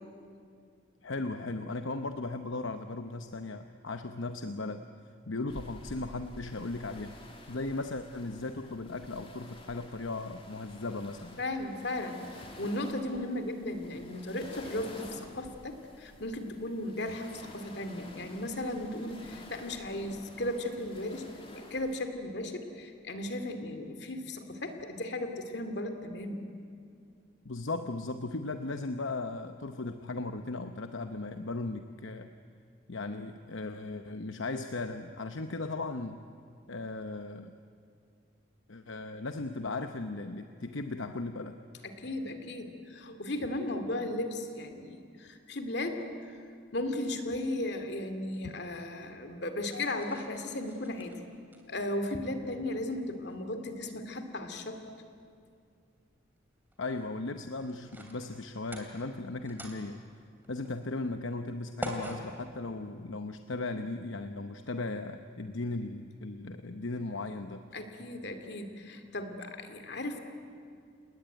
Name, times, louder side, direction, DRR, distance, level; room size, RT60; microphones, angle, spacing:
voice 1, 1.0-4.8 5.3-7.1 7.5-11.4 27.4-32.3 32.9-36.2 36.7-37.5 38.7-41.6 56.8-60.0 60.5-67.6, left 2 dB, 75° left, 8 dB, 0.9 m, -37 dB
sound 1, 5.5-22.0, left 1 dB, 25° left, 2.9 m, -50 dB
voice 2, 11.4-26.4 41.8-46.3 46.7-51.1 51.7-54.8 67.7-70.2, left 1 dB, 55° left, 7 dB, 2.5 m, -36 dB
sound 2, 46.4-63.4, equal, 10° right, 3.0 m, -49 dB
29.5 x 19.0 x 9.2 m, 2.3 s
head